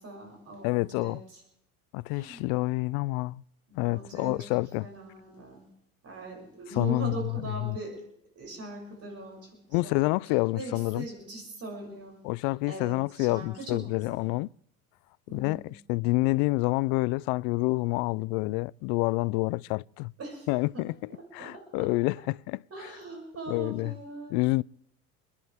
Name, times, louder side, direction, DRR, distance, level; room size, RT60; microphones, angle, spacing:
voice 1, 0.0-1.4 2.1-2.6 3.7-5.6 6.0-8.0 8.4-10.1 10.5-12.2 12.7-14.3 15.3-15.6 20.2-20.8 21.1-21.9 22.7-24.6, right 2 dB, 35° right, 6.9 m, -41 dB
voice 2, 0.6-1.2 1.9-3.4 3.8-4.9 6.8-7.3 7.6-7.8 9.7-11.1 12.2-14.5 15.3-20.1 20.5-22.6 23.5-23.9 24.3-24.6, left 23 dB, 55° left, 0.5 m, -28 dB
28.5 x 11.5 x 3.5 m
hypercardioid pair, 75°, 43 cm